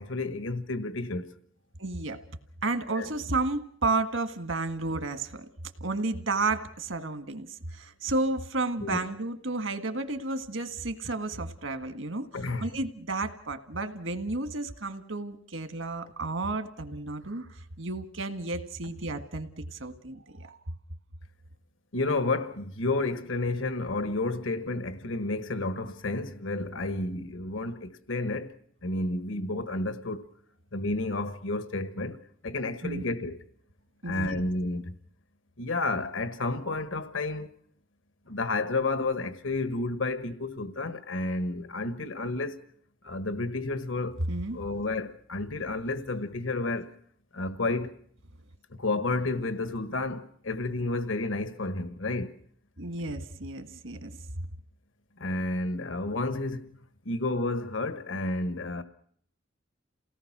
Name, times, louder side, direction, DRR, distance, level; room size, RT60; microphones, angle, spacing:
voice 1, 0.0-1.3 2.9-3.1 8.8-9.1 12.3-12.7 21.9-28.5 28.8-30.2 30.7-32.2 32.4-33.4 34.0-35.0 35.6-37.6 38.3-42.7 43.0-44.2 44.5-46.9 47.3-47.9 48.7-52.3 55.2-56.7 57.0-58.8, left 2 dB, 80° left, 1.4 m, -31 dB
voice 2, 1.8-2.2 2.6-5.5 5.8-12.3 12.6-20.6 32.8-33.0 34.0-34.4 44.3-44.6 52.8-54.1, right 3 dB, 75° right, 1.8 m, -32 dB
29.0 x 18.0 x 6.1 m
head